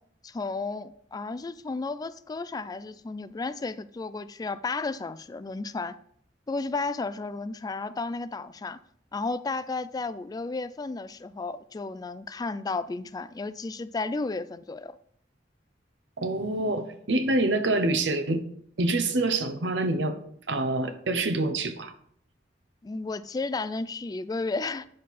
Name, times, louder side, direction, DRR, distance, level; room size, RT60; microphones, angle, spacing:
voice 1, 0.2-5.9 6.5-8.8 9.1-15.0 22.8-24.9, left 3 dB, 20° left, 0.3 m, -33 dB
voice 2, 16.2-18.5 18.8-20.2 20.5-21.9, right 2 dB, 85° right, 0.9 m, -26 dB
8.6 x 6.4 x 4.2 m
head